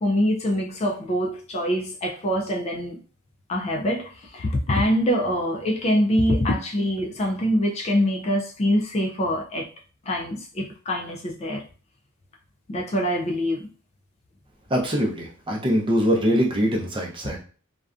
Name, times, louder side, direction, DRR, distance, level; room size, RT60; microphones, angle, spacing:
voice 1, 0.0-3.0 3.5-9.7 10.1-11.6 12.7-13.7 17.2-17.4, equal, 30° left, 0.3 m, -24 dB
voice 2, 14.7-17.4, equal, 25° right, 0.6 m, -23 dB
2.5 x 2.2 x 2.4 m
head